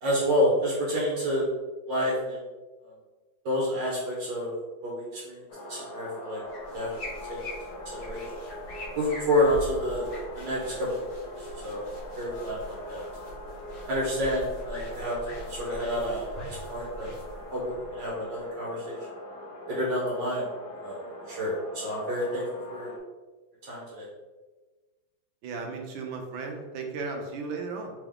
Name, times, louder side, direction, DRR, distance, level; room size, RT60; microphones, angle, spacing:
voice 1, 0.0-1.5 1.9-2.4 2.8-2.9 3.5-4.5 4.8-6.4 6.7-6.9 7.3-7.4 7.9-8.2 9.0-10.1 10.3-11.0 11.6-11.9 12.2-13.0 13.9-17.1 17.5-19.0 19.7-20.5 20.8-22.9 23.6-24.1, equal, 70° right, -5 dB, 1.6 m, -29 dB
sound 1, 5.5-23.0, left 1 dB, 65° left, 1.2 m, -42 dB
sound 2, 6.4-18.4, equal, 40° left, 1.2 m, -43 dB
voice 2, 25.4-27.9, right 4 dB, 90° right, 3 dB, 1.6 m, -35 dB
3.9 x 3.7 x 3.4 m, 1.3 s
omnidirectional pair, 2.1 m